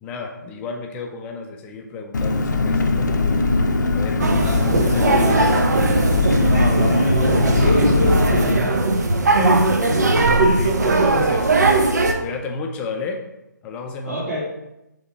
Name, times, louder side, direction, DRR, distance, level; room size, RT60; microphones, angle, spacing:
voice 1, 0.0-3.2 3.9-5.4 5.9-6.1 9.3-10.1 10.5-13.2 13.6-14.2, left 4 dB, 10° left, 2 dB, 0.5 m, -33 dB
Engine, 2.1-8.6, left 3 dB, 65° left, 0.7 m, -20 dB
sound 1, 4.2-12.1, right 2 dB, 60° right, 0.9 m, -19 dB
voice 2, 4.3-4.8 5.1-5.5 6.4-8.8 14.1-14.4, equal, 45° right, -7 dB, 2.0 m, -27 dB
7.1 x 3.6 x 4.6 m, 0.93 s
figure-of-eight pair, 145°, 10 cm